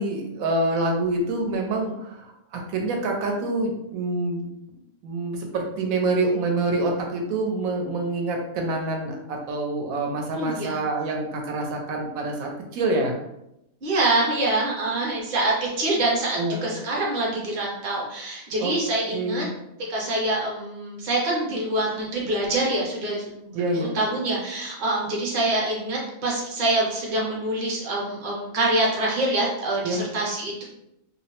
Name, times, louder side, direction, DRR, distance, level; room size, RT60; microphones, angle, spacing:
voice 1, 0.0-4.5 5.0-13.2 16.3-16.6 18.6-18.7 19.1-19.5 23.5-23.9 29.8-30.0, right 2 dB, 85° right, 1 dB, 1.0 m, -26 dB
voice 2, 10.4-10.8 13.8-19.5 19.9-30.6, right 2 dB, 45° right, -3 dB, 0.7 m, -25 dB
2.5 x 2.0 x 2.8 m, 0.83 s
omnidirectional pair, 1.4 m